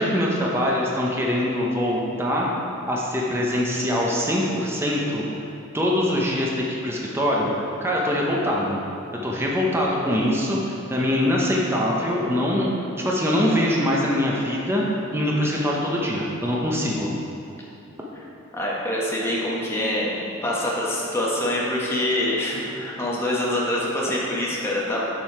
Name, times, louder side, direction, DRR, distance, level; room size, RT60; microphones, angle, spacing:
voice 1, 0.0-2.5 2.9-5.3 5.7-7.5 7.8-8.8 9.2-12.7 13.0-14.8 15.1-17.1, left 1 dB, 10° right, -3 dB, 0.8 m, -23 dB
voice 2, 18.5-25.0, left 1 dB, 10° left, -5 dB, 1.4 m, -25 dB
7.5 x 6.2 x 4.7 m, 2.8 s
head